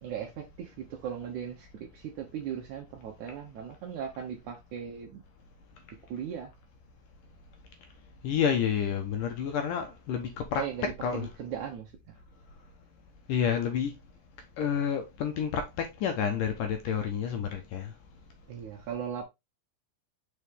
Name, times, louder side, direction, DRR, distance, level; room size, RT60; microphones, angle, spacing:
voice 1, 0.0-5.2 6.1-6.5 10.6-12.1 18.5-19.2, right 8 dB, 70° right, 1.9 m, -38 dB
voice 2, 8.2-10.6 11.0-11.3 13.3-13.9 14.6-17.9, left 8 dB, 70° left, 2.2 m, -29 dB
6.6 x 4.4 x 3.6 m
omnidirectional pair, 4.5 m